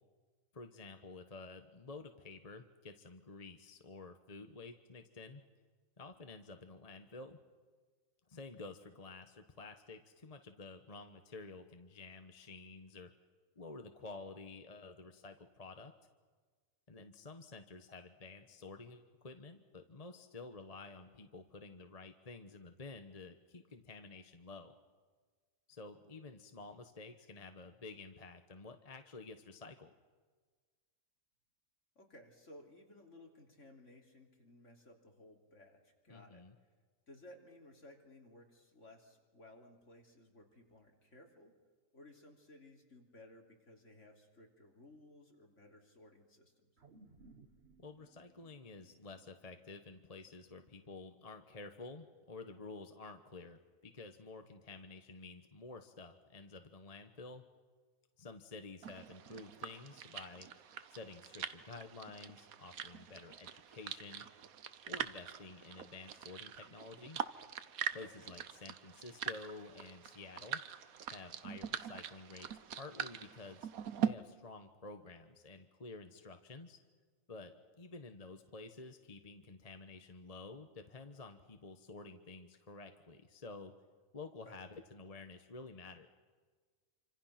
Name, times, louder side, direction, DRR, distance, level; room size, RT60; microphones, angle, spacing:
voice 1, 0.5-5.4 6.0-7.4 8.3-13.1 13.6-15.9 16.9-24.7 25.7-29.9 36.1-36.5 47.8-57.4 58.2-60.5 60.9-64.3 64.8-67.2 67.9-70.6 71.1-73.7 74.0-76.8 77.3-83.7 84.1-86.1, left 3 dB, 30° left, 7 dB, 1.2 m, -51 dB
voice 2, 32.0-36.4 37.1-41.5 41.9-46.7 67.9-68.1 84.4-84.6, left 1 dB, 60° left, 1 dB, 3.6 m, -59 dB
sound 1, 46.8-51.3 51.7-51.8, right 3 dB, 50° right, 1.8 m, -64 dB
sound 2, 58.8-74.1, right 9 dB, 80° right, 1.3 m, -43 dB
28.0 x 26.0 x 5.9 m, 1.5 s
omnidirectional pair, 1.5 m